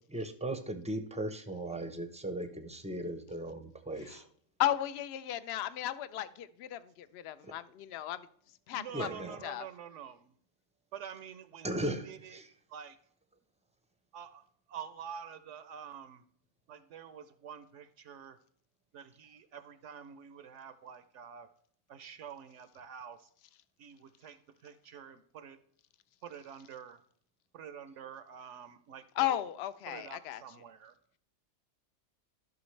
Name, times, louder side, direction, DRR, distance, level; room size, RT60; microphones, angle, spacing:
voice 1, 0.1-4.3 7.4-7.5 8.9-9.5 11.6-12.5, right 1 dB, 10° right, 0.5 m, -37 dB
voice 2, 4.6-8.3 8.7-9.1 9.4-9.7 29.2-30.4, left 12 dB, 65° left, 0.8 m, -34 dB
voice 3, 8.7-10.3 10.9-11.8 12.1-12.4 12.7-13.0 14.1-14.4 14.7-16.2 16.7-18.4 18.9-21.5 21.9-23.2 23.8-25.6 26.2-27.0 27.5-29.4 29.9-30.9, right 8 dB, 75° right, 0.9 m, -47 dB
13.0 x 6.0 x 3.2 m
omnidirectional pair, 1.3 m